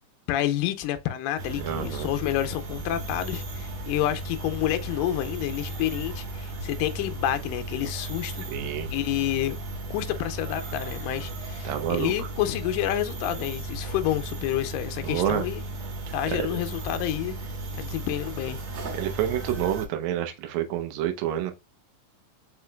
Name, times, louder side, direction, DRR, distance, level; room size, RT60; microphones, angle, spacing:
voice 1, 0.3-8.4 8.9-9.6 9.9-15.6 16.1-17.4 17.7-18.6, left 13 dB, 80° left, 2.2 m, -29 dB
sound 1, 1.4-19.9, right 1 dB, 60° right, 2.1 m, -35 dB
voice 2, 1.6-2.1 8.5-8.9 11.6-12.1 15.0-15.4 16.3-16.6 19.0-21.5, right 11 dB, 75° right, 1.7 m, -28 dB
4.9 x 4.5 x 2.2 m
omnidirectional pair, 4.1 m